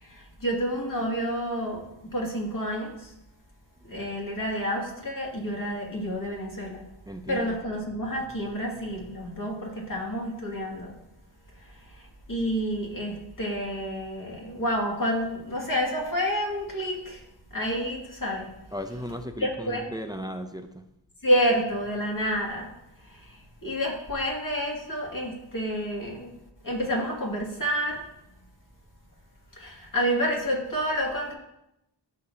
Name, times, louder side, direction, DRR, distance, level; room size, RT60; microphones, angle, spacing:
voice 1, 0.0-3.1 3.8-6.8 7.3-10.9 11.9-12.0 12.3-17.2 17.5-18.5 19.4-19.9 21.2-22.7 23.1-23.4 23.6-26.3 26.6-28.0 29.6-31.3, equal, 45° left, -2 dB, 2.5 m, -29 dB
voice 2, 7.1-7.6 18.7-20.8, equal, 10° right, 7 dB, 0.6 m, -36 dB
14.0 x 6.5 x 2.9 m, 0.85 s
wide cardioid pair, 60°, 43 cm